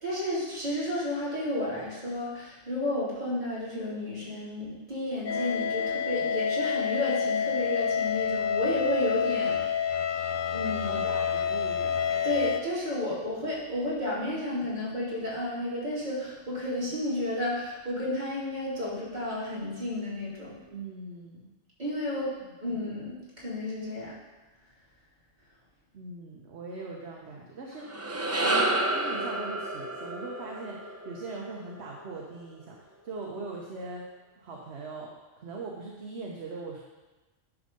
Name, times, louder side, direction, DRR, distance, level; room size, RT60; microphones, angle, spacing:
voice 1, 0.0-9.9 10.5-11.0 12.2-20.6 21.8-22.3 22.6-24.1 28.4-28.6, left 1 dB, 35° right, -8 dB, 2.7 m, -32 dB
sound 1, 5.3-12.6, left 7 dB, 55° left, 0.6 m, -28 dB
voice 2, 10.8-12.0 20.7-21.4 22.4-22.5 25.9-28.1 28.4-34.1 34.4-36.8, right 3 dB, 60° right, -2 dB, 1.2 m, -40 dB
sound 2, 27.7-32.2, right 2 dB, 20° right, 0.4 m, -30 dB
9.8 x 3.7 x 6.6 m, 1.2 s
omnidirectional pair, 1.3 m